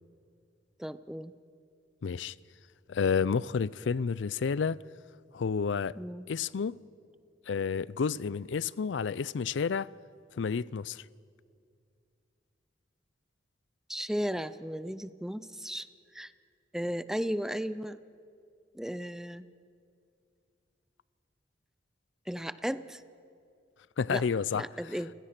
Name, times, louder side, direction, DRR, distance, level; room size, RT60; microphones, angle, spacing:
voice 1, 0.8-1.3 6.0-6.3 13.9-15.9 16.1-16.3 16.7-18.0 18.7-19.5 22.3-23.0 24.1-24.2 24.5-25.1, equal, 5° right, 0.4 m, -35 dB
voice 2, 2.0-2.3 2.9-4.8 5.3-6.0 6.3-6.8 7.5-9.9 10.4-11.0 24.0-24.6, left 6 dB, 85° left, 0.4 m, -30 dB
28.5 x 16.5 x 5.9 m
head